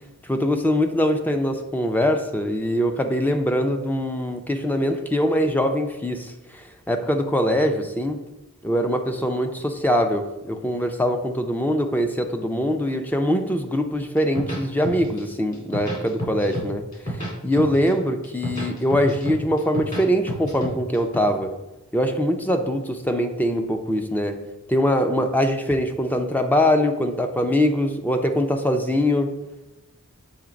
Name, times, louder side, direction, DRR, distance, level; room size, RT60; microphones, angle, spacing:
voice 1, 0.3-6.3 6.9-8.2 8.6-21.5 21.9-24.4 24.7-29.3, equal, 10° left, 6 dB, 0.5 m, -23 dB
sound 1, 14.2-15.2 15.5-16.7 16.9-17.9 18.2-20.0 20.3-21.2, equal, 35° left, 2.0 m, -30 dB
7.2 x 3.2 x 5.0 m, 0.98 s
head